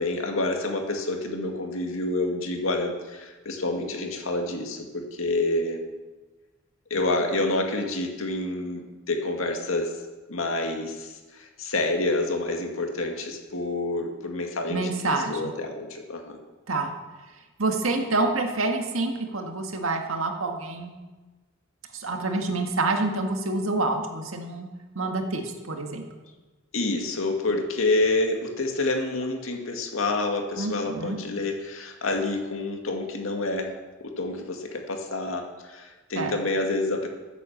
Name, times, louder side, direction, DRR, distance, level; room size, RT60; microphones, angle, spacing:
voice 1, 0.0-5.9 6.9-8.8 9.1-9.9 10.3-16.4 26.7-33.7 34.0-37.1, left 2 dB, 90° left, 3 dB, 2.1 m, -28 dB
voice 2, 14.7-15.5 16.7-16.9 17.6-20.9 21.9-24.7 25.0-26.0 30.6-31.2 36.2-36.3, right 2 dB, 90° right, 4 dB, 1.8 m, -27 dB
14.5 x 8.3 x 7.2 m, 1.2 s
head